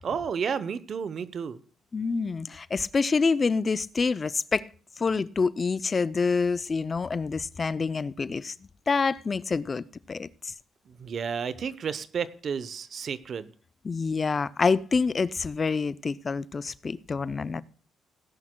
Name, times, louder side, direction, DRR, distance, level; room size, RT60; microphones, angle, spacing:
voice 1, 0.0-1.6 10.9-13.5, right 6 dB, 55° right, 0.7 m, -32 dB
voice 2, 1.9-4.7 5.0-8.5 8.9-10.5 13.8-17.6, left 4 dB, 35° left, 0.4 m, -27 dB
17.5 x 11.0 x 2.2 m
cardioid pair, 90°, 0 cm